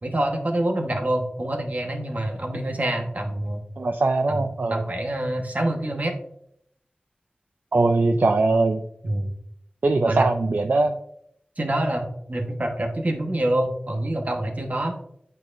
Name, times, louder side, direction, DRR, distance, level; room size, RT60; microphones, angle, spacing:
voice 1, 0.0-3.6 4.3-6.1 9.0-9.3 10.0-10.3 11.6-14.9, right 1 dB, 50° right, 3 dB, 1.2 m, -26 dB
voice 2, 3.8-4.8 7.7-8.8 9.8-11.0, right 3 dB, 70° right, 5 dB, 0.4 m, -21 dB
8.5 x 4.6 x 2.6 m, 0.72 s
wide cardioid pair, 60°, 3 cm